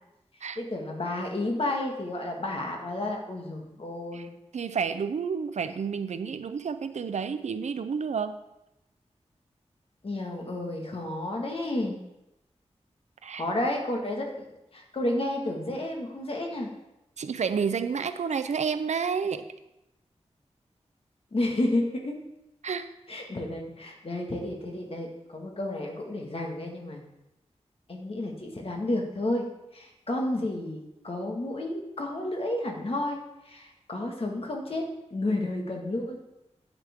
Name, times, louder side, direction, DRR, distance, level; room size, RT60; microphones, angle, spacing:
voice 1, 0.6-4.3 10.0-12.0 13.4-14.5 14.7-16.7 21.3-22.2 23.1-27.0 27.9-29.4 29.7-36.2, left 1 dB, 55° left, 1 dB, 1.7 m, -31 dB
voice 2, 4.5-8.4 13.2-13.4 17.2-19.5 22.6-22.9, right 6 dB, 80° right, 11 dB, 0.5 m, -30 dB
8.9 x 8.1 x 3.6 m, 0.91 s
wide cardioid pair, 75°, 12 cm